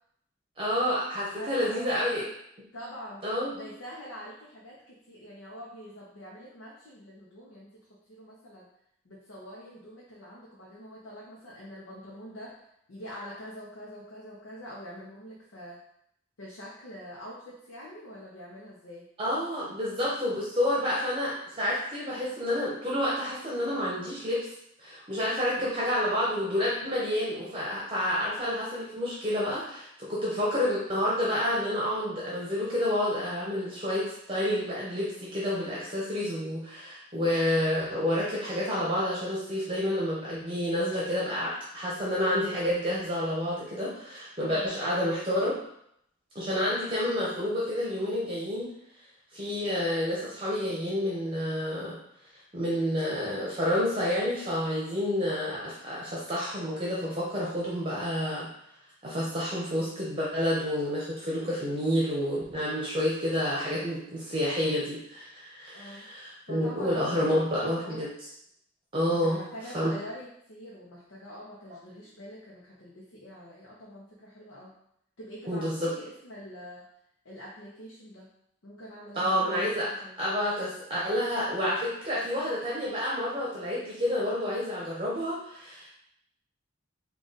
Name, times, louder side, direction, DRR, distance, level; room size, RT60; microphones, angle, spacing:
voice 1, 0.6-2.2 3.2-3.6 19.2-24.5 24.8-45.6 46.3-48.7 49.3-52.0 52.5-58.5 59.0-68.3 68.9-69.4 69.7-69.9 75.5-75.9 79.1-79.9 80.2-85.9, left 1 dB, 25° right, -6 dB, 0.7 m, -29 dB
voice 2, 1.2-2.1 2.7-3.2 3.5-8.7 9.0-15.8 16.4-19.1 25.5-25.8 44.5-44.7 65.7-66.1 66.5-68.1 69.1-74.7 75.2-76.8 77.2-78.3 78.6-80.1, equal, 85° left, -5 dB, 0.8 m, -45 dB
3.7 x 2.4 x 3.9 m, 0.73 s
head